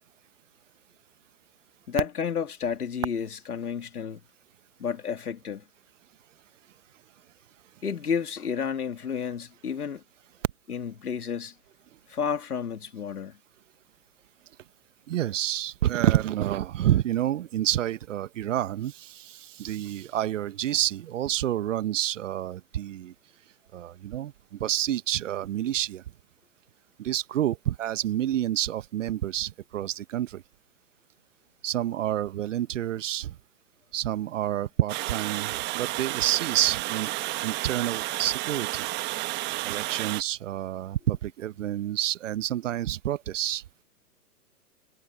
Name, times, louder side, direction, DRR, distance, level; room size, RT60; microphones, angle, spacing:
voice 1, 1.9-4.2 4.8-5.6 7.8-10.0 10.7-11.5 12.1-13.4, left 7 dB, 80° left, 3.0 m, -31 dB
voice 2, 15.1-23.1 23.7-26.0 27.0-30.4 31.6-33.3 33.9-37.1 37.4-38.8 39.6-43.6, right 12 dB, 55° right, 1.2 m, -28 dB
Water, 34.9-40.2, right 20 dB, 25° right, 1.3 m, -31 dB
hypercardioid pair, 125°, 45 cm